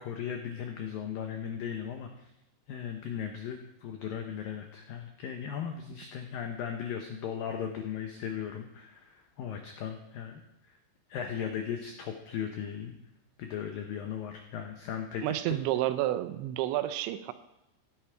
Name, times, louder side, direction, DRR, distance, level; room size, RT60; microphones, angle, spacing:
voice 1, 0.0-2.3 2.7-10.8 11.1-12.9 13.4-15.6, left 8 dB, 90° left, 4 dB, 2.0 m, -37 dB
voice 2, 15.2-17.3, right 14 dB, 80° right, 12 dB, 2.9 m, -30 dB
15.5 x 10.0 x 4.5 m, 0.90 s
omnidirectional pair, 5.4 m